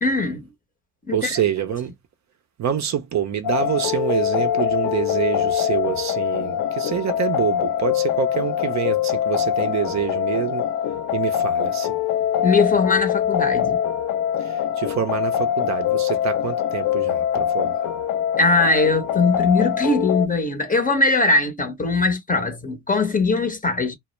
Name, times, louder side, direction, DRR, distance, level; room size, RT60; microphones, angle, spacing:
voice 1, 0.0-0.5 1.1-1.4 12.4-13.8 18.4-24.0, left 3 dB, 20° left, 0.7 m, -20 dB
voice 2, 1.1-1.9 2.6-10.6 11.1-12.0 14.4-17.8, right 9 dB, 45° right, 0.5 m, -26 dB
sound 1, 3.4-20.3, left 10 dB, 60° left, 0.5 m, -23 dB
2.1 x 2.0 x 3.0 m
hypercardioid pair, 60°, 40 cm